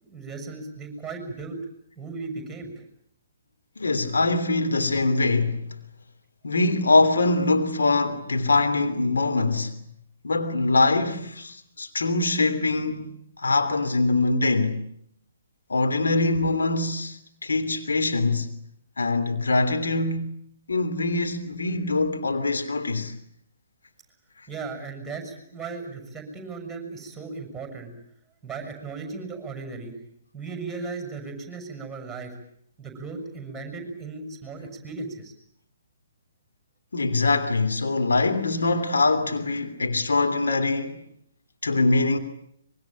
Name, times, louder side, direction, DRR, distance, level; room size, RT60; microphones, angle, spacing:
voice 1, 0.0-1.6 2.0-2.9 24.5-27.9 28.4-29.9 30.3-32.3 32.8-35.3, right 4 dB, 5° right, 6.4 m, -36 dB
voice 2, 3.8-5.6 6.4-9.8 10.2-14.8 15.7-18.5 19.0-20.4 20.7-23.1 36.9-41.0 41.6-42.2, left 3 dB, 70° left, 3.0 m, -23 dB
25.0 x 23.5 x 9.1 m
figure-of-eight pair, 130°, 0 cm